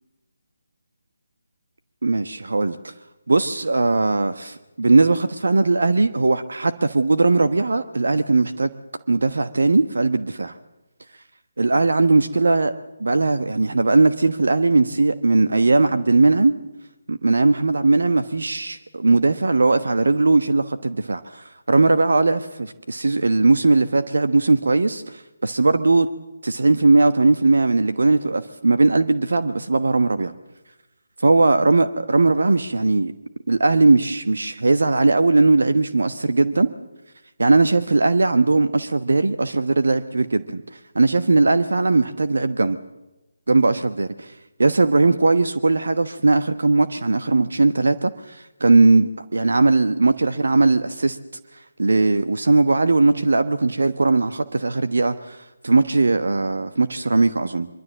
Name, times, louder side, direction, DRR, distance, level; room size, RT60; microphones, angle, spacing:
voice 1, 2.0-2.9 3.3-8.7 9.1-10.5 11.6-12.7 13.0-16.5 17.1-26.1 26.4-30.3 31.2-33.1 33.5-36.7 37.4-40.6 40.9-42.8 43.5-44.3 44.6-51.2 51.8-57.7, right 3 dB, 65° right, 10 dB, 1.1 m, -19 dB
24.0 x 23.5 x 7.5 m, 1.0 s
figure-of-eight pair, 150°, 0 cm